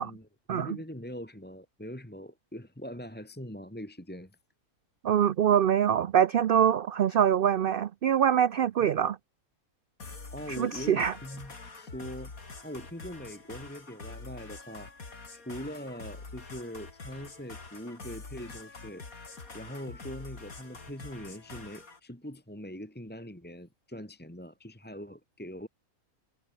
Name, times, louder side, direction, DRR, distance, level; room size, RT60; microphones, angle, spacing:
voice 1, 0.0-4.3 10.3-12.3 12.6-14.9 15.3-19.0 19.5-25.7, equal, 5° left, 2.0 m, -42 dB
voice 2, 5.0-9.2 10.6-11.1, right 9 dB, 65° right, 0.5 m, -24 dB
sound 1, 10.0-22.0, left 3 dB, 75° left, 3.7 m, -46 dB
omnidirectional pair, 1.5 m